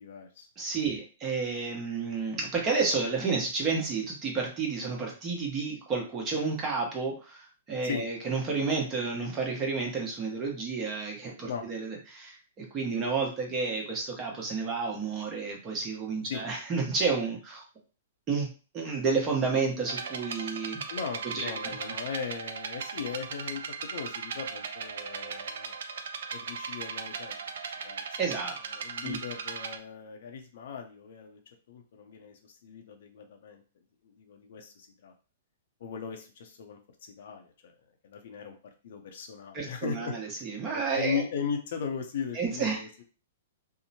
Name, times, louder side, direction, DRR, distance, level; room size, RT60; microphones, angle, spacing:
voice 1, 0.0-0.5 7.8-8.0 11.4-11.7 16.2-16.4 20.9-25.7 26.3-27.4 27.7-31.4 31.7-33.6 34.0-35.1 35.8-37.7 38.0-38.6 38.8-43.0, left 6 dB, 65° left, 4 dB, 0.5 m, -38 dB
voice 2, 0.6-17.6 18.3-18.5 18.7-20.8 21.3-21.7 28.2-28.5 29.0-29.2 39.5-41.2 42.3-42.8, right 4 dB, 30° right, -1 dB, 1.0 m, -31 dB
sound 1, 19.8-29.8, right 6 dB, 70° right, 0.4 m, -38 dB
2.7 x 2.1 x 2.8 m, 0.36 s
hypercardioid pair, 120°, 0 cm